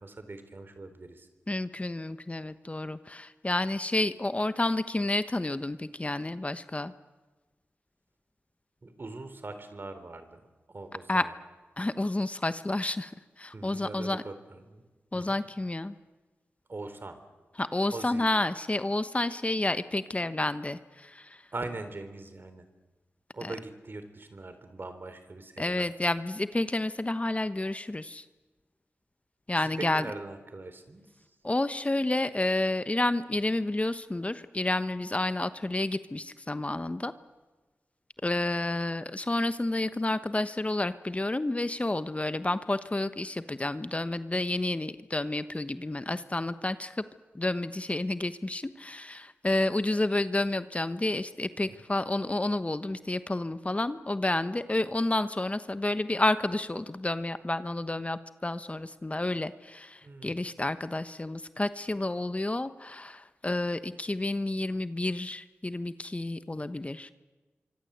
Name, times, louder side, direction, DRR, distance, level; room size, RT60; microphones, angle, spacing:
voice 1, 0.0-1.3 8.8-11.3 13.5-14.8 15.1-15.4 16.7-17.2 17.9-18.3 21.5-22.7 23.3-25.9 29.6-31.2 51.6-51.8 60.0-60.5, right 2 dB, 50° right, 10 dB, 3.6 m, -42 dB
voice 2, 1.5-6.9 11.1-11.3 11.8-13.1 13.4-14.2 15.1-15.9 17.6-21.4 23.4-23.5 25.6-28.2 29.5-30.1 31.4-37.1 38.2-47.0 47.3-67.1, left 2 dB, 30° left, 12 dB, 1.1 m, -30 dB
25.0 x 25.0 x 8.1 m, 1.2 s
cardioid pair, 40°, 5 cm